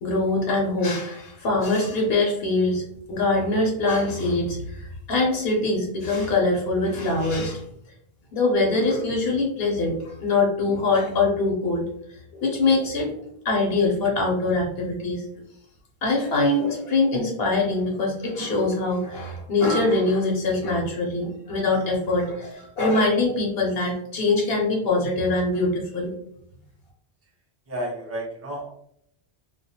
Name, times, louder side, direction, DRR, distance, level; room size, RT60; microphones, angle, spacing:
voice 1, 0.0-2.8 3.1-7.6 8.3-11.9 12.3-13.1 13.4-15.3 16.0-26.1, left 2 dB, 75° left, -1 dB, 0.8 m, -23 dB
voice 2, 27.7-28.7, right 1 dB, 20° right, -3 dB, 0.4 m, -31 dB
2.3 x 2.0 x 2.7 m, 0.71 s
omnidirectional pair, 1.0 m